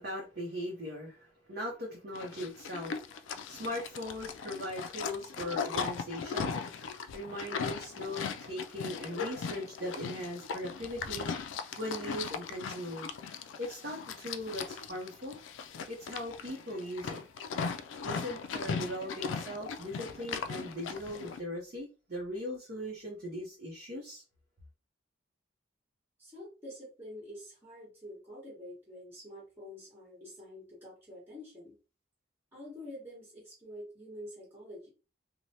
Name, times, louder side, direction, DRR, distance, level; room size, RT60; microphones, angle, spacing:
voice 1, 0.0-3.1 3.5-6.7 7.1-11.3 11.8-13.1 13.6-15.4 15.9-17.2 18.0-24.2, equal, 55° right, -2 dB, 0.7 m, -39 dB
Livestock farm animals working animals, 2.1-21.4, left 5 dB, 80° left, 0.3 m, -38 dB
voice 2, 26.2-31.7 32.5-34.9, left 1 dB, 10° right, -5 dB, 1.1 m, -47 dB
3.2 x 2.1 x 2.7 m, 0.32 s
head